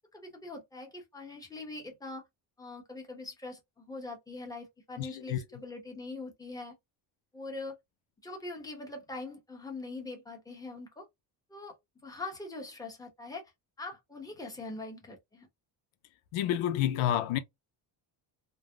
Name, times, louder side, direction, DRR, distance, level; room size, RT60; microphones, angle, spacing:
voice 1, 0.1-2.2 2.6-6.8 7.3-7.8 8.2-11.1 11.5-11.8 12.0-13.4 13.8-15.5, left 3 dB, 10° left, 0.9 m, -42 dB
voice 2, 5.0-5.4 16.3-17.4, left 11 dB, 90° left, 0.5 m, -29 dB
3.3 x 2.0 x 2.2 m
cardioid pair, 105°, 46 cm